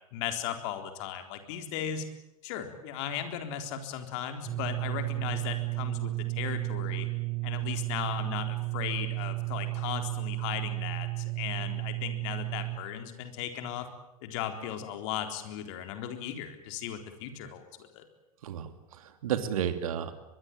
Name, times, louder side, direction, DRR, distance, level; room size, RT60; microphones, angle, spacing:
voice 1, 0.1-2.0 2.4-7.1 7.4-13.9 14.2-18.0, left 9 dB, 50° left, 6 dB, 3.9 m, -37 dB
sound 1, 4.5-12.8, right 24 dB, 25° right, 1.9 m, -33 dB
voice 2, 18.4-20.1, right 9 dB, 65° right, 9 dB, 2.5 m, -32 dB
23.0 x 22.0 x 9.1 m, 0.87 s
figure-of-eight pair, 90°, 19 cm